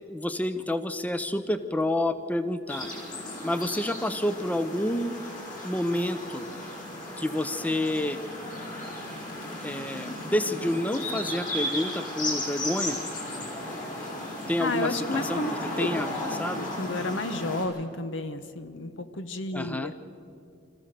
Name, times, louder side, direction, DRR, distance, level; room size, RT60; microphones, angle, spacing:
voice 1, 0.1-2.9 3.4-5.1 5.6-6.5 7.2-8.2 9.6-13.0 14.5-15.4 15.8-16.1 16.4-16.7 19.5-19.9, left 1 dB, 10° left, 11 dB, 0.6 m, -29 dB
sound 1, 2.7-17.6, left 1 dB, 45° left, 5.0 m, -35 dB
voice 2, 14.6-15.9 16.3-20.0, left 2 dB, 75° left, 10 dB, 1.2 m, -32 dB
26.5 x 15.0 x 6.8 m, 2.5 s
head